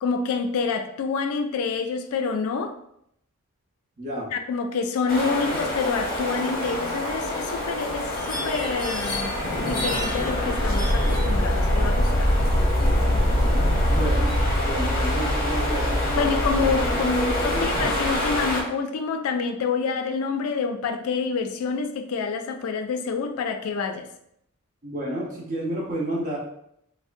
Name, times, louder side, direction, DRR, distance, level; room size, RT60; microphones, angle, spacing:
voice 1, 0.0-2.7 4.3-9.3 9.7-12.3 16.2-24.1, left 5 dB, 80° left, 7 dB, 0.3 m, -27 dB
voice 2, 4.0-4.3 13.9-14.3 14.6-16.8 17.5-17.6 24.8-26.4, right 1 dB, 40° right, -3 dB, 0.7 m, -30 dB
sound 1, 5.1-18.6, left 1 dB, 45° left, 0.7 m, -24 dB
3.5 x 2.0 x 2.5 m, 0.74 s
head